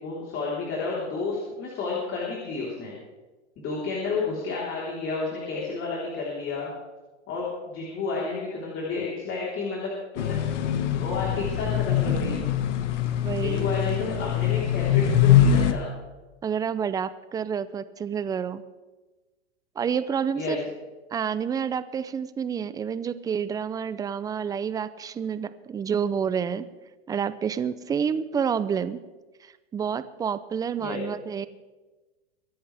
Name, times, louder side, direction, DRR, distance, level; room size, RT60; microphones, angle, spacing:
voice 1, 0.0-2.9 3.6-6.7 7.3-10.4 10.9-12.4 13.4-15.9 20.3-20.7 30.8-31.0, left 4 dB, 35° left, -4 dB, 3.9 m, -31 dB
sound 1, 10.2-15.7, left 9 dB, 80° left, 1.3 m, -23 dB
voice 2, 13.2-13.7 16.4-18.6 19.8-20.6 21.1-26.7 27.1-29.0 29.7-31.5, right 7 dB, 10° right, 14 dB, 0.4 m, -29 dB
23.5 x 11.0 x 3.4 m, 1.2 s
hypercardioid pair, 125°, 36 cm